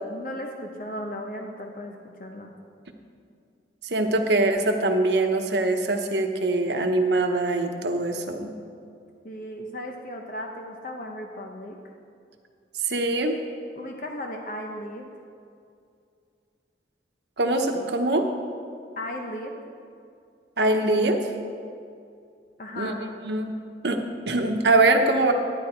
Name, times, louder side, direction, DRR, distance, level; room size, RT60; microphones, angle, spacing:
voice 1, 0.1-2.5 9.2-11.8 13.7-15.1 19.0-19.6 22.6-23.1 25.1-25.2, left 1 dB, 50° left, 2 dB, 0.8 m, -36 dB
voice 2, 3.8-8.5 12.8-13.4 17.4-18.3 20.6-21.2 22.8-22.9 23.2-23.5 23.8-24.0 24.3-25.3, right 2 dB, 70° right, 4 dB, 1.0 m, -23 dB
11.0 x 10.5 x 4.5 m, 2.4 s
head